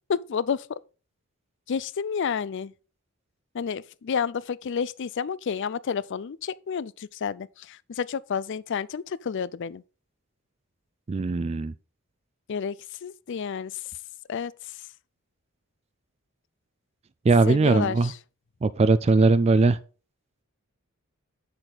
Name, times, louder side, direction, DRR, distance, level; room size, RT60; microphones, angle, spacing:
voice 1, 0.1-0.8 1.7-2.7 3.5-9.8 12.5-13.8 14.3-14.8 17.5-18.2, left 6 dB, 55° left, 0.4 m, -30 dB
voice 2, 11.1-11.7 17.3-18.1 18.6-19.8, right 3 dB, 30° right, 0.3 m, -20 dB
7.9 x 6.7 x 4.0 m
head